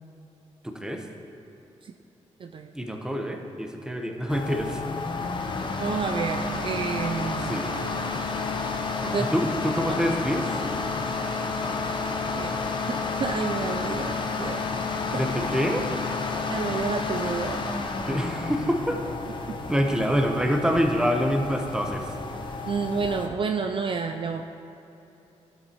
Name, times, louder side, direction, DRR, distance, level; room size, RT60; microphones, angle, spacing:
voice 1, 0.6-1.1 2.7-4.8 7.4-7.8 9.2-10.6 15.1-15.9 18.1-19.0 19.7-22.2 22.4-22.5, equal, 5° right, 3 dB, 0.9 m, -26 dB
voice 2, 2.4-2.7 5.8-7.5 9.0-9.3 12.4-12.6 12.9-14.7 15.1-15.2 16.5-17.6 19.5-19.6 22.7-24.4, right 5 dB, 45° right, 5 dB, 0.4 m, -30 dB
sound 1, 4.3-23.3, left 4 dB, 40° left, 0.8 m, -30 dB
11.5 x 6.9 x 2.9 m, 2.9 s
cardioid pair, 70°, 12 cm